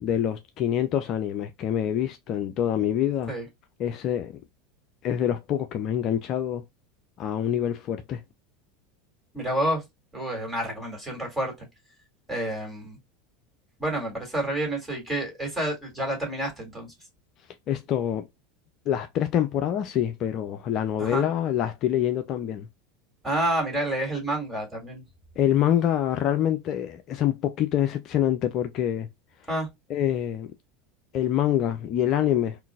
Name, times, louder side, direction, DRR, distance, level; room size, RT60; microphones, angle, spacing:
voice 1, 0.0-3.3 3.8-4.4 5.0-6.6 7.2-8.2 17.7-18.3 18.9-22.7 25.4-29.1 29.9-30.5 31.1-32.6, left 10 dB, 45° left, 0.5 m, -26 dB
voice 2, 9.3-9.8 10.1-11.7 12.3-13.0 13.8-16.9 21.0-21.3 23.2-25.0 29.5-29.7, right 1 dB, 10° right, 2.2 m, -29 dB
3.7 x 2.6 x 2.3 m
figure-of-eight pair, 80°, 0 cm